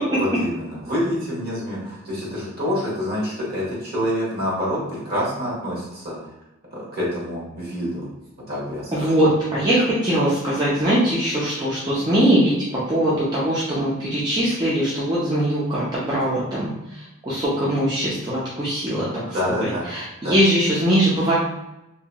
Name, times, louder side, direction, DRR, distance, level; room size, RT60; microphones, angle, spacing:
voice 1, 0.1-6.3 6.7-8.1 8.5-9.1 19.3-19.9 20.2-20.4, equal, 45° right, -6 dB, 1.2 m, -27 dB
voice 2, 8.9-19.2 19.6-21.3, right 1 dB, 20° right, -8 dB, 0.5 m, -21 dB
2.9 x 2.8 x 2.2 m, 0.93 s
head